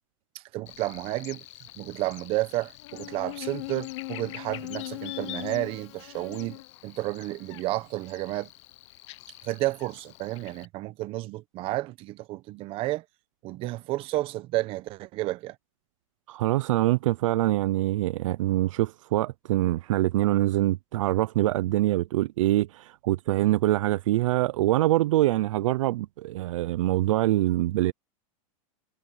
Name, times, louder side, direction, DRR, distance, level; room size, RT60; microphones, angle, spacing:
voice 1, 0.5-1.4 1.8-8.5 9.4-13.0 13.4-15.5, right 17 dB, 30° right, 1.0 m, -31 dB
Buzz, 0.7-10.7, left 20 dB, 55° left, 1.0 m, -41 dB
voice 2, 16.3-27.9, right 15 dB, 65° right, 0.6 m, -24 dB
supercardioid pair, 155°, 17 cm